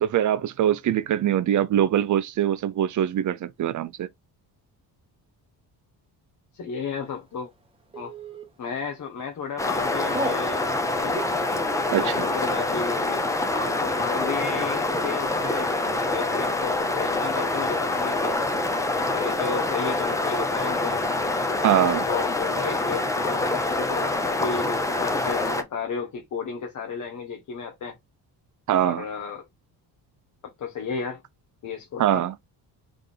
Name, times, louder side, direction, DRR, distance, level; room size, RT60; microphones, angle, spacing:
voice 1, 0.0-4.1 11.9-12.1 21.6-22.0 28.7-29.1 32.0-32.3, right 11 dB, 45° right, 0.6 m, -23 dB
voice 2, 6.5-7.5 8.0-8.1 8.6-11.2 11.9-13.2 13.5-18.4 19.1-21.0 21.8-28.0 28.8-29.4 30.4-31.2 31.6-32.2, left 6 dB, 45° left, 1.0 m, -33 dB
Telephone, 7.9-8.4 9.0-9.3 9.6-10.4 11.0-16.5 16.8-17.9 18.2-18.6 18.9-19.0 19.3-19.9, right 1 dB, 15° right, 1.2 m, -37 dB
sound 1, 9.6-25.6, left 2 dB, 10° left, 0.5 m, -26 dB
3.6 x 3.4 x 3.9 m
cardioid pair, 175°, 41 cm